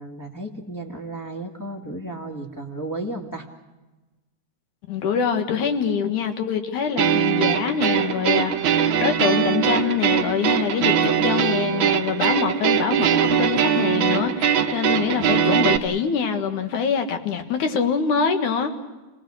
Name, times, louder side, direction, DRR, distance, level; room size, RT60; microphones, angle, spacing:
voice 1, 0.0-3.5, right 2 dB, 10° left, 0 dB, 1.2 m, -33 dB
voice 2, 4.9-18.7, left 6 dB, 75° left, 6 dB, 3.1 m, -24 dB
sound 1, 7.0-15.8, right 8 dB, 60° right, 1.4 m, -21 dB
29.0 x 18.5 x 6.4 m, 1.1 s
omnidirectional pair, 3.5 m